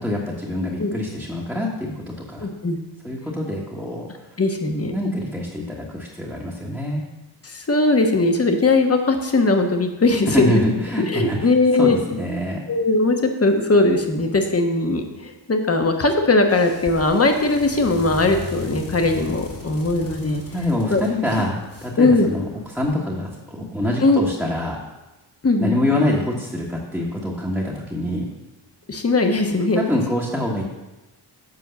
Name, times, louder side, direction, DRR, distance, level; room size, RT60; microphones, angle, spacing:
voice 1, 0.0-2.5 3.0-4.1 4.9-7.0 10.3-11.5 11.8-12.6 20.5-24.8 25.6-28.3 29.8-30.6, left 1 dB, ahead, -5 dB, 1.4 m, -25 dB
voice 2, 2.4-2.8 4.4-4.9 7.4-10.7 11.1-12.2 12.7-20.4 20.9-21.0 22.0-22.3 24.0-24.2 25.4-25.8 28.9-29.8, left 2 dB, 30° left, 5 dB, 1.2 m, -19 dB
sound 1, 16.4-22.9, left 2 dB, 45° left, 2.7 m, -37 dB
8.0 x 4.6 x 7.0 m, 1.1 s
cardioid pair, 75°, 45 cm